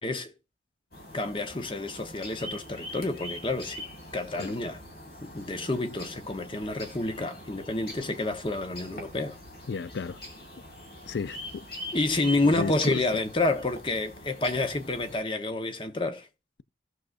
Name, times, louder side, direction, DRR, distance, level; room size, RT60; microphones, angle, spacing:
voice 1, 0.0-0.3 1.1-3.8 4.1-4.8 5.2-9.4 11.9-16.3, left 2 dB, 30° left, 0.9 m, -29 dB
sound 1, 0.9-15.2, left 1 dB, 60° left, 2.5 m, -43 dB
voice 2, 9.7-10.2 11.1-11.6 12.5-13.0, left 5 dB, 90° left, 0.4 m, -33 dB
16.5 x 6.4 x 2.5 m
head